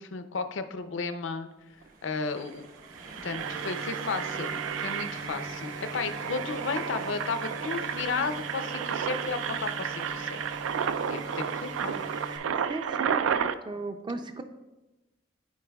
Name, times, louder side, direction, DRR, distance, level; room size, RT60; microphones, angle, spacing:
voice 1, 0.0-1.5 2.0-2.7 3.2-10.4 11.1-12.0, left 4 dB, 70° left, 9 dB, 0.5 m, -34 dB
sound 1, 1.6-12.9, right 1 dB, 45° right, 1.0 m, -48 dB
Engine, 1.8-1.9 2.2-2.4 2.8-13.5, right 7 dB, 90° right, 0.3 m, -32 dB
sound 2, 3.4-12.4, right 1 dB, 65° right, 1.2 m, -43 dB
voice 2, 12.7-13.2 13.7-14.4, right 3 dB, 25° right, 7 dB, 0.4 m, -35 dB
13.5 x 4.6 x 2.3 m, 1.1 s
head